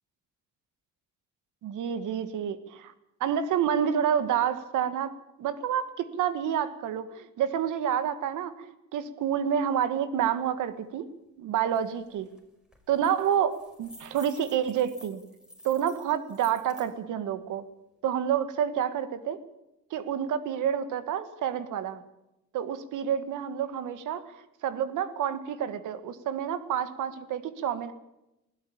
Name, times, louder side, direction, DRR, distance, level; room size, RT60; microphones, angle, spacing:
voice 1, 1.6-2.9 3.2-11.1 11.4-12.3 12.9-15.2 15.6-17.6 18.0-19.4 19.9-22.0 22.5-24.4 24.6-27.9, right 9 dB, 85° right, 12 dB, 1.8 m, -29 dB
sound 1, 11.7-11.8 12.2-12.4 12.7-16.9, equal, ahead, 5.5 m, -50 dB
20.0 x 16.5 x 8.7 m, 0.92 s
cardioid pair, 90°, 30 cm